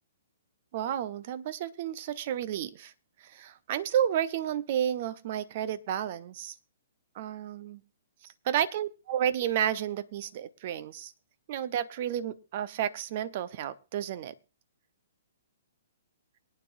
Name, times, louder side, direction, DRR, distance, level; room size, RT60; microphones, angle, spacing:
voice 1, 0.7-2.9 3.2-6.5 7.2-7.8 8.5-11.1 11.5-14.3, right 10 dB, 45° right, 16 dB, 0.7 m, -31 dB
22.5 x 9.5 x 2.6 m, 0.31 s
figure-of-eight pair, 120°, 0 cm